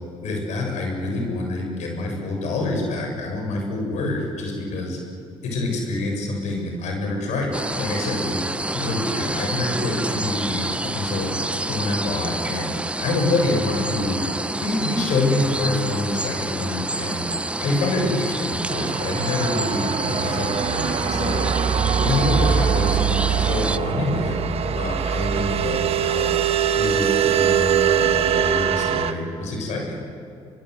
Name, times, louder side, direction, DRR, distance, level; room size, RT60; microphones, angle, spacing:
voice 1, 0.2-5.0 5.4-7.5 7.8-8.4 8.7-11.3 11.7-12.7 13.0-14.2 14.6-17.3 17.6-21.5 22.0-26.4 26.7-30.0, left 2 dB, 75° left, 2 dB, 7.2 m, -26 dB
sound 1, 7.5-23.8, right 2 dB, 10° right, 0.7 m, -28 dB
sound 2, 18.7-29.1, right 8 dB, 55° right, 1.4 m, -22 dB
24.0 x 23.0 x 8.2 m, 2.5 s
supercardioid pair, 75°, 12 cm